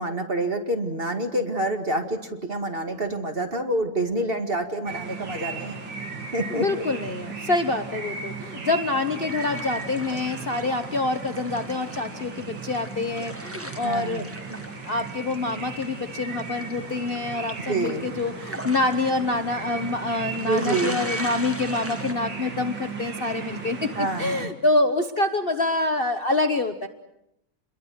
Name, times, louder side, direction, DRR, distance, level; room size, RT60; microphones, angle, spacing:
voice 1, 0.0-5.8 6.3-6.7 13.8-14.3 17.7-18.0 20.5-21.0 24.0-24.5, right 1 dB, 30° right, 5 dB, 2.3 m, -27 dB
sound 1, 4.9-24.5, right 4 dB, 85° right, 3.4 m, -36 dB
voice 2, 6.5-26.9, left 2 dB, 35° left, 7 dB, 1.2 m, -26 dB
sound 2, 9.1-22.1, right 1 dB, 10° right, 1.3 m, -40 dB
28.0 x 22.0 x 7.7 m, 0.81 s
omnidirectional pair, 2.0 m